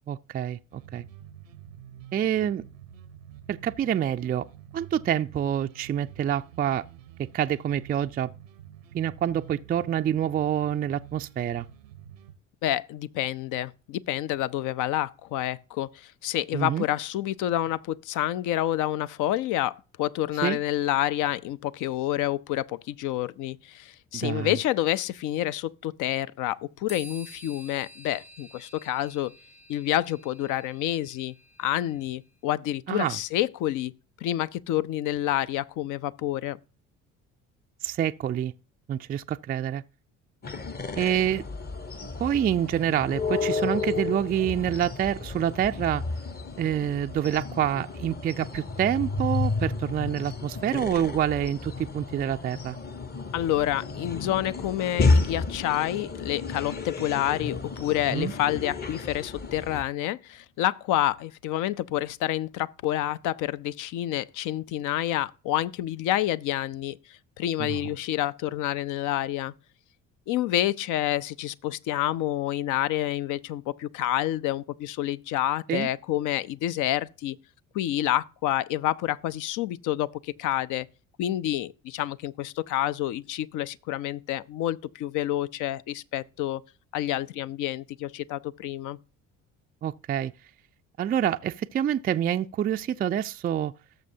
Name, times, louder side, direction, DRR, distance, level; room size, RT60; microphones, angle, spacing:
voice 1, 0.1-1.0 2.1-2.6 3.5-4.5 4.7-6.8 7.2-8.3 8.9-11.7 16.5-16.8 20.4-20.6 24.1-24.6 32.9-33.2 37.8-38.5 38.9-39.8 41.0-41.4 42.0-46.0 46.6-52.8 58.1-58.3 67.6-67.8 75.7-75.9 89.8-90.3 91.0-93.7, right 10 dB, 25° right, 0.4 m, -27 dB
sound 1, 0.7-12.3, right 10 dB, 90° right, 0.8 m, -48 dB
voice 2, 12.6-29.3 29.7-33.9 34.2-36.6 53.3-69.5 70.3-77.4 77.7-80.9 81.2-86.6 86.9-89.0, left 13 dB, 55° left, 0.5 m, -28 dB
sound 2, 26.9-32.2, right 1 dB, 75° left, 5.6 m, -50 dB
sound 3, 40.4-59.8, left 3 dB, 25° left, 0.9 m, -31 dB
18.0 x 6.7 x 2.7 m
hypercardioid pair, 55°, 38 cm